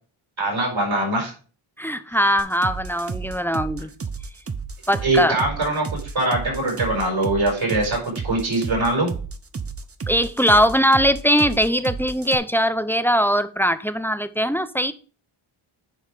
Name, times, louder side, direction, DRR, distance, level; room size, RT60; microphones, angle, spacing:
voice 1, 0.4-1.3 5.0-9.1, right 2 dB, 70° right, 5.1 m, -22 dB
voice 2, 1.8-3.9 4.9-5.4 10.1-14.9, equal, 5° left, 0.5 m, -20 dB
sound 1, 2.4-12.4, right 5 dB, 30° right, 0.7 m, -32 dB
10.5 x 4.7 x 5.0 m
wide cardioid pair, 125°, 50 cm